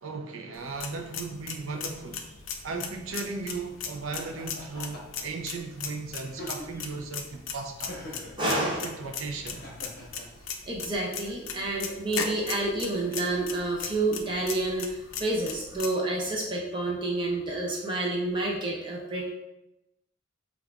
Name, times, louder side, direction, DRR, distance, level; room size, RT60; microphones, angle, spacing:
voice 1, 0.0-2.3 2.6-8.0 8.4-9.6, right 4 dB, 80° right, 0.5 m, -36 dB
sound 1, 0.6-15.9, left 6 dB, 70° left, 0.4 m, -38 dB
Laughter, 4.1-5.2 6.2-7.0 7.9-8.4 9.5-10.3, left 1 dB, 50° left, 0.8 m, -42 dB
voice 2, 8.4-8.9 10.0-10.1 10.3-10.4 10.7-19.3, right 2 dB, 25° right, 0.5 m, -29 dB
5.4 x 2.4 x 2.4 m
head